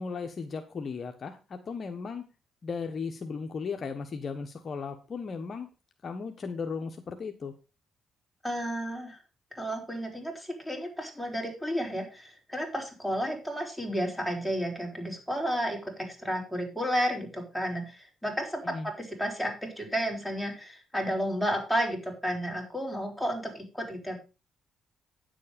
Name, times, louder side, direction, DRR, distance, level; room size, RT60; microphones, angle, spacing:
voice 1, 0.0-2.2 2.6-5.7 6.0-7.5 18.6-18.9, left 5 dB, 45° left, 5 dB, 1.2 m, -36 dB
voice 2, 8.4-9.2 9.6-24.2, equal, ahead, 1 dB, 4.6 m, -32 dB
9.7 x 7.6 x 5.2 m, 0.31 s
cardioid pair, 90°, 0 cm